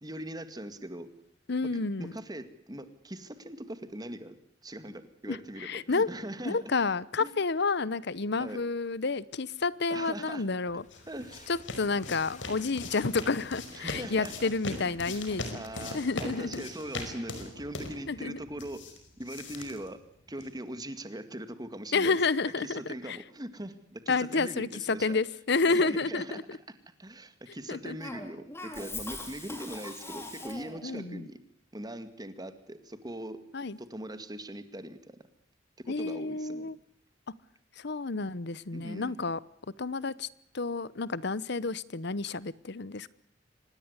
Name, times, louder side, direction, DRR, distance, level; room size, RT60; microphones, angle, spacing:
voice 1, 0.0-1.1 1.7-4.3 4.6-6.6 7.2-7.3 8.4-8.6 9.9-10.5 11.1-11.5 13.7-14.3 15.1-18.8 19.2-20.0 20.3-22.2 22.6-25.2 25.7-26.4 27.0-31.4 31.7-33.4 33.8-35.0 35.8-36.7 38.7-39.2, right 1 dB, 20° right, 10 dB, 2.1 m, -41 dB
voice 2, 1.5-2.1 5.3-6.1 6.4-10.8 11.5-15.6 15.9-16.6 18.1-18.4 21.9-22.8 23.1-23.2 24.1-26.6 27.7-28.0 30.8-31.3 33.5-33.8 35.9-36.8 37.8-39.4 39.8-40.3 40.5-43.1, left 4 dB, 65° left, 20 dB, 0.9 m, -30 dB
sound 1, 10.6-20.6, left 2 dB, 85° left, 5.2 m, -41 dB
sound 2, 10.8-16.3, left 3 dB, 40° left, 2.7 m, -54 dB
Cough, 28.0-30.9, left 2 dB, 15° left, 4.3 m, -41 dB
25.5 x 19.5 x 8.2 m, 0.68 s
head